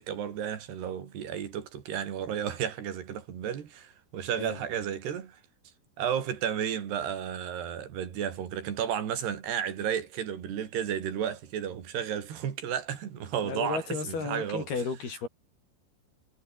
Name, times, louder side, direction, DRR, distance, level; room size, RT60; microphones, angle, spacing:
voice 1, 0.0-5.4 6.0-14.7, right 9 dB, 90° right, 5.0 m, -33 dB
voice 2, 13.4-15.3, left 5 dB, 70° left, 8.4 m, -33 dB
omnidirectional pair, 4.6 m